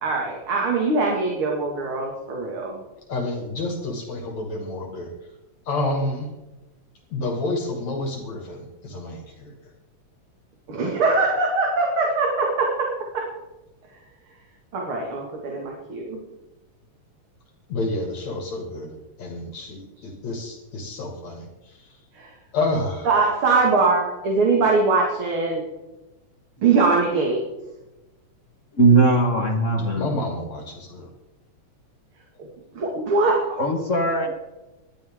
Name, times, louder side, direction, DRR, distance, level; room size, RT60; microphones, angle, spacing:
voice 1, 0.0-2.8 10.7-12.9 13.1-13.3 14.7-16.2 22.1-22.3 23.0-25.6 26.6-27.4 32.8-33.4, right 3 dB, 50° right, -1 dB, 2.8 m, -22 dB
voice 2, 3.1-5.1 5.6-6.3 7.1-9.5 17.7-22.0 22.5-23.1 30.0-31.1 34.2-34.3, left 2 dB, 65° left, 2 dB, 3.4 m, -29 dB
voice 3, 28.7-30.1 33.6-34.3, right 3 dB, 35° left, 3 dB, 1.3 m, -19 dB
20.5 x 12.5 x 3.7 m, 1.0 s
omnidirectional pair, 3.4 m